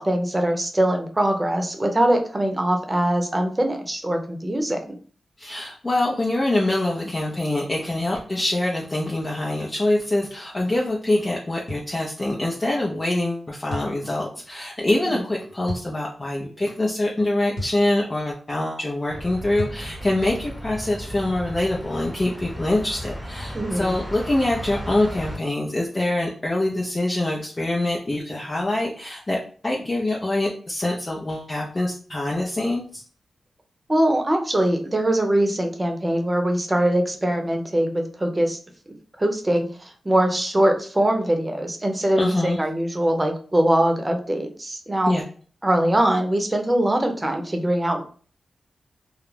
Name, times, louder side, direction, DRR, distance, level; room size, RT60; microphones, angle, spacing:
voice 1, 0.0-5.0 15.1-15.2 23.5-24.0 33.9-38.6 39.2-45.1 45.6-48.0, right 1 dB, 25° right, 4 dB, 0.7 m, -22 dB
voice 2, 5.4-29.4 29.6-33.0 42.2-42.6 45.1-45.2, left 1 dB, 35° left, -2 dB, 0.5 m, -24 dB
sound 1, 11.7-11.9 13.7-14.0 15.7-15.9 17.6-17.8 19.6-19.9, left 1 dB, 70° left, 0.9 m, -32 dB
sound 2, 19.1-25.4, equal, 5° left, 1.2 m, -35 dB
2.3 x 2.0 x 3.2 m, 0.43 s
supercardioid pair, 40°, 0 cm